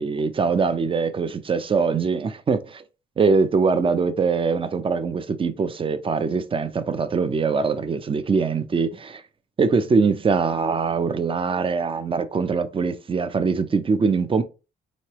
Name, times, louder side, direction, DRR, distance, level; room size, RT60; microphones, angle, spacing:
voice 1, 0.0-2.8 3.2-9.2 9.6-14.4, right 5 dB, 25° right, 0.5 m, -22 dB
3.6 x 3.1 x 2.9 m
cardioid pair, 90°, 20 cm